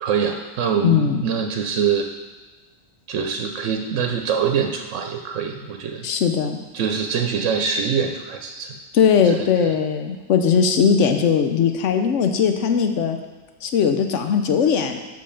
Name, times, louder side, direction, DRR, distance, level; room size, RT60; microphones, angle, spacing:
voice 1, 0.0-2.1 3.1-6.1 6.7-8.8 9.2-9.4 9.6-9.7, right 6 dB, 85° right, 4 dB, 1.0 m, -24 dB
voice 2, 0.8-1.2 6.0-6.6 8.9-13.2 13.6-15.0, left 7 dB, 85° left, 6 dB, 1.0 m, -19 dB
5.9 x 5.2 x 5.6 m, 1.3 s
omnidirectional pair, 1.2 m